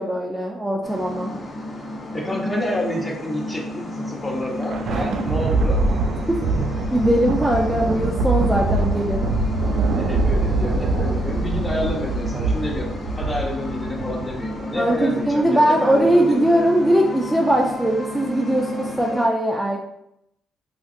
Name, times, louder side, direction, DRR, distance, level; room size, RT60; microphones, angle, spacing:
voice 1, 0.0-1.3 5.3-5.4 6.3-6.4 6.9-9.3 14.7-19.8, right 1 dB, 5° right, -2 dB, 0.4 m, -20 dB
sound 1, 0.8-19.3, left 1 dB, 45° left, 0.8 m, -32 dB
voice 2, 2.1-5.8 9.9-16.5, left 1 dB, 20° left, 0 dB, 0.8 m, -29 dB
Thunder, 4.3-15.0, right 3 dB, 70° right, 0.4 m, -23 dB
3.8 x 2.5 x 2.5 m, 0.79 s
cardioid pair, 90°, 0 cm